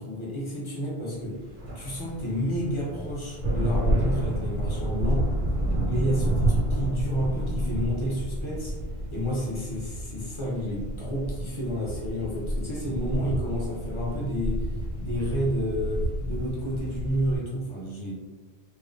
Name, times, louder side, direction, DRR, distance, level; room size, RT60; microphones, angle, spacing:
voice 1, 0.0-1.4 1.7-5.3 5.9-8.7 9.1-14.7 15.0-18.1, equal, 40° left, -5 dB, 0.5 m, -30 dB
sound 1, 1.4-17.4, right 1 dB, 75° right, 1.1 m, -29 dB
2.4 x 2.1 x 2.5 m, 1.4 s
omnidirectional pair, 1.1 m